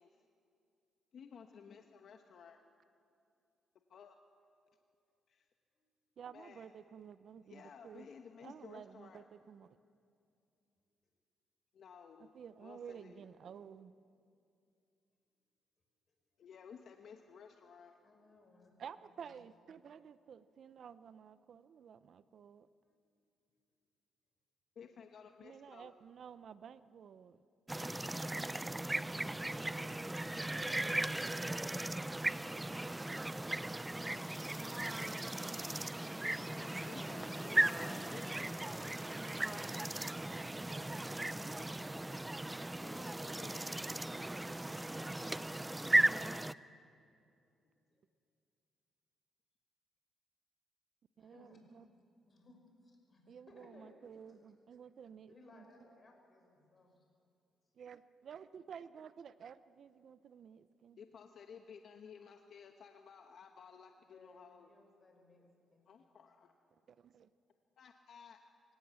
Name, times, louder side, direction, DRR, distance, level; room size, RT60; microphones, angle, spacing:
voice 1, 1.1-2.6 3.9-4.2 5.3-5.5 6.3-6.7 7.5-9.2 11.7-12.3 12.6-13.2 16.4-18.0 24.8-25.9 36.2-38.6 42.8-43.5 61.0-64.7 65.9-66.5 67.8-68.4, left 6 dB, 60° left, 5 dB, 1.0 m, -55 dB
voice 2, 6.2-8.1 8.4-9.7 12.2-13.9 18.8-22.7 25.4-27.4 39.9-41.5 42.1-42.6 43.2-45.4 51.2-51.9 53.3-55.6 57.8-61.0 66.9-67.3, right 7 dB, 60° right, 15 dB, 0.6 m, -53 dB
voice 3, 18.0-18.7 19.3-19.4 22.8-22.9 23.5-23.6 47.6-48.0 51.2-51.6 52.3-54.4 55.3-57.1 64.0-65.9 66.6-66.7, left 2 dB, 35° left, 2 dB, 5.7 m, -65 dB
sound 1, 27.7-46.5, right 1 dB, 10° right, 0.4 m, -37 dB
24.5 x 17.0 x 7.1 m, 2.5 s
cardioid pair, 90°, 0 cm